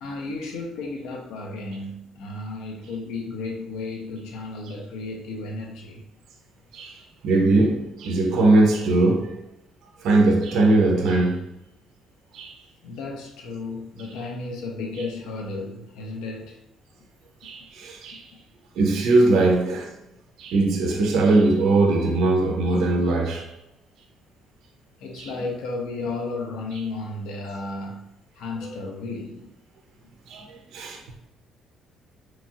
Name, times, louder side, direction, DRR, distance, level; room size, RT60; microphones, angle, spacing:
voice 1, 0.0-6.0 12.8-16.6 25.0-29.5, left 3 dB, 75° left, 0.5 m, -33 dB
voice 2, 6.7-9.4 10.0-11.5 12.3-12.6 17.4-18.3 18.8-19.9 20.4-23.5 25.2-25.3 28.6-28.7 30.3-31.0, right 2 dB, 60° right, 0.4 m, -20 dB
2.9 x 2.3 x 2.6 m
cardioid pair, 170°, 0 cm